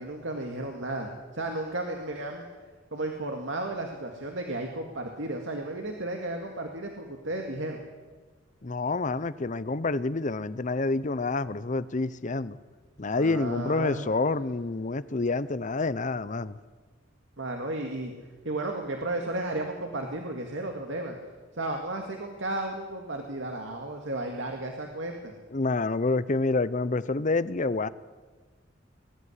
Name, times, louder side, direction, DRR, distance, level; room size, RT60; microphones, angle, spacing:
voice 1, 0.0-2.5 2.9-7.8 13.1-14.0 17.4-18.1 18.4-21.1 21.6-25.3, right 2 dB, 80° right, 2 dB, 2.1 m, -33 dB
voice 2, 8.6-12.6 13.0-16.6 25.5-27.9, left 3 dB, 40° left, 16 dB, 0.7 m, -28 dB
21.0 x 13.0 x 9.8 m, 1.4 s
head